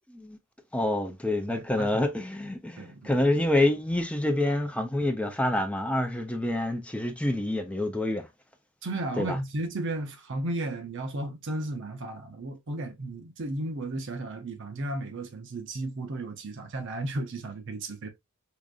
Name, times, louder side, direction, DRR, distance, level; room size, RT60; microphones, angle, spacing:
voice 1, 0.7-8.2 9.2-9.4, left 1 dB, 5° left, 0.4 m, -27 dB
voice 2, 1.5-2.0 2.8-3.1 8.8-18.1, right 2 dB, 55° right, 0.7 m, -34 dB
4.9 x 2.5 x 2.4 m
head